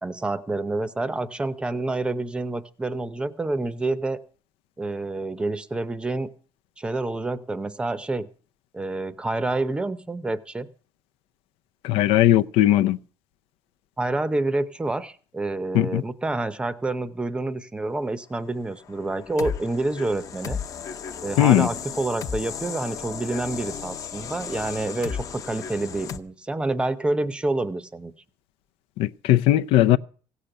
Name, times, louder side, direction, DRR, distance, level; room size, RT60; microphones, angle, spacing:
voice 1, 0.0-4.2 4.8-6.3 6.8-8.3 8.7-10.7 14.0-20.6 21.2-28.1, right 2 dB, 10° right, 0.7 m, -28 dB
voice 2, 11.8-13.0 15.7-16.0 21.4-21.7 29.0-30.0, left 13 dB, 85° left, 0.5 m, -18 dB
sound 1, 18.8-26.2, left 7 dB, 35° left, 0.8 m, -35 dB
16.0 x 6.7 x 8.8 m
cardioid pair, 170°, 9 cm